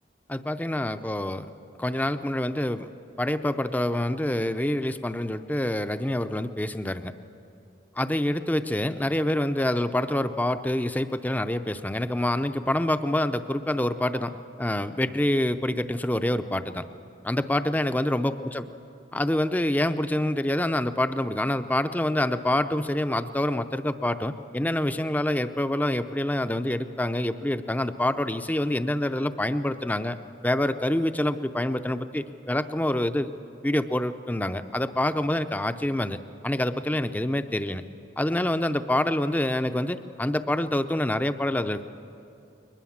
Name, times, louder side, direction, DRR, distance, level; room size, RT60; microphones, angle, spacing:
voice 1, 0.3-1.5 1.8-2.9 3.2-7.1 8.0-16.8 17.2-18.6 19.1-30.2 30.4-33.3 33.6-37.8 38.2-41.8, left 1 dB, 10° left, 10 dB, 0.5 m, -26 dB
21.5 x 20.5 x 7.3 m, 2.7 s
head